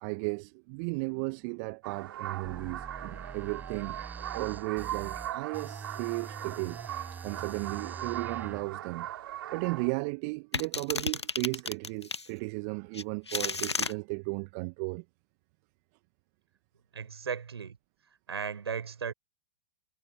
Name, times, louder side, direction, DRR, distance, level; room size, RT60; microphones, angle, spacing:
voice 1, 0.0-4.0 4.3-6.8 7.2-9.1 9.5-15.0, right 33 dB, 40° right, 1.2 m, -35 dB
sound 1, 1.8-9.9, right 13 dB, 55° right, 5.7 m, -40 dB
sound 2, 2.4-8.6, right 5 dB, 15° right, 5.9 m, -44 dB
sound 3, 10.5-12.3 12.9-13.9, left 3 dB, 85° left, 1.5 m, -32 dB
voice 2, 16.9-17.8 18.3-19.1, right 6 dB, 70° right, 6.4 m, -36 dB
figure-of-eight pair, 105°, 14 cm